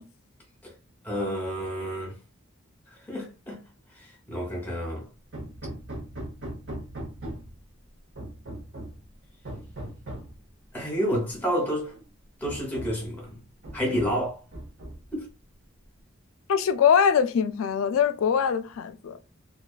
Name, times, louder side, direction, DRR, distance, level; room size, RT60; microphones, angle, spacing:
voice 1, 1.0-2.2 2.9-3.6 3.9-5.1 10.7-11.9 12.4-13.4 13.7-14.4 15.1-15.3, equal, 10° left, 0.9 m, -30 dB
Hammer, 5.3-7.6 8.2-9.0 9.4-10.4 11.4-11.5 11.9-12.0 12.4-13.1 13.6-14.2 14.5-15.2, right 1 dB, 60° right, 0.9 m, -39 dB
voice 2, 16.5-19.2, left 7 dB, 70° left, 0.3 m, -22 dB
2.3 x 2.3 x 2.3 m
head